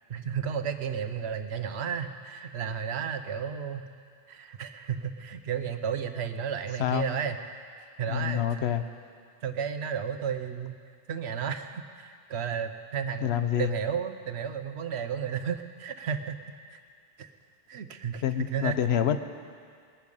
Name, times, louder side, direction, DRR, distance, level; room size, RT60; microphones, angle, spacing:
voice 1, 0.1-3.9 4.3-7.4 8.0-8.6 9.4-10.7 11.1-16.4 16.7-16.8 17.2-17.3 17.7-18.8, right 7 dB, 90° right, 9 dB, 1.1 m, -33 dB
voice 2, 8.1-8.8 13.2-13.7 18.2-19.2, left 10 dB, 80° left, 10 dB, 1.0 m, -27 dB
20.5 x 9.8 x 5.4 m, 2.1 s
omnidirectional pair, 1.1 m